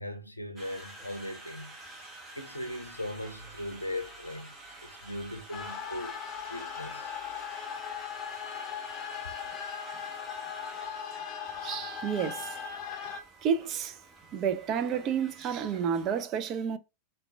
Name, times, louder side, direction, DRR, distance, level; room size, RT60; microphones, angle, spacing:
voice 1, 0.0-1.7 2.3-4.5 4.8-6.2 6.5-7.1, left 1 dB, 85° left, 0.5 m, -39 dB
Conversation, 0.6-16.2, right 2 dB, 15° right, 0.9 m, -50 dB
sound 1, 5.5-13.2, left 7 dB, 30° left, 0.7 m, -38 dB
voice 2, 11.6-12.6 13.4-14.0 14.3-16.8, right 7 dB, 35° right, 0.4 m, -30 dB
3.6 x 2.3 x 3.2 m
figure-of-eight pair, 90°, 0 cm